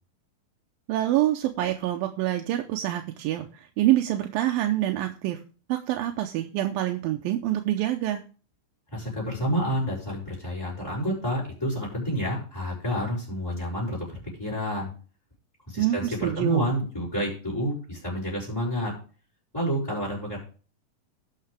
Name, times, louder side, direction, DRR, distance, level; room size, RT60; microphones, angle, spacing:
voice 1, 0.9-5.4 5.7-8.2 15.8-16.6, right 14 dB, 85° right, 4 dB, 2.5 m, -26 dB
voice 2, 8.9-14.0 14.4-14.9 15.7-18.9 19.5-20.4, equal, 5° left, -9 dB, 5.7 m, -29 dB
18.0 x 6.7 x 3.4 m, 0.38 s
omnidirectional pair, 4.1 m